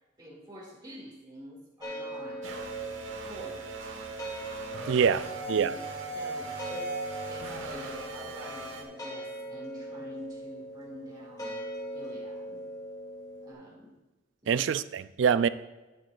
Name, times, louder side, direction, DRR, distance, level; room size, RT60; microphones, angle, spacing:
voice 1, 0.2-2.4 3.3-4.0 5.1-5.8 6.1-6.9 7.3-11.6 11.9-12.6 13.4-13.9 14.4-14.6, equal, 20° right, 2.3 m, -47 dB
sound 1, 1.8-13.5, equal, 20° left, 1.5 m, -41 dB
sound 2, 2.4-8.8, right 3 dB, 80° right, 1.2 m, -38 dB
voice 2, 4.9-5.7 14.5-15.5, right 7 dB, 65° right, 0.3 m, -25 dB
13.0 x 7.9 x 2.5 m
head